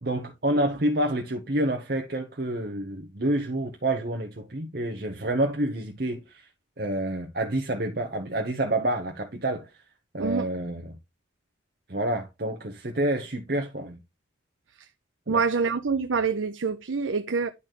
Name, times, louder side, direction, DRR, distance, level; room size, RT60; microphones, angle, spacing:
voice 1, 0.0-6.5 6.8-9.8 10.1-11.0 11.9-14.0 15.3-15.4, right 1 dB, 55° right, 1.1 m, -28 dB
voice 2, 15.3-17.5, right 5 dB, 85° right, 0.7 m, -26 dB
11.0 x 4.2 x 3.1 m
head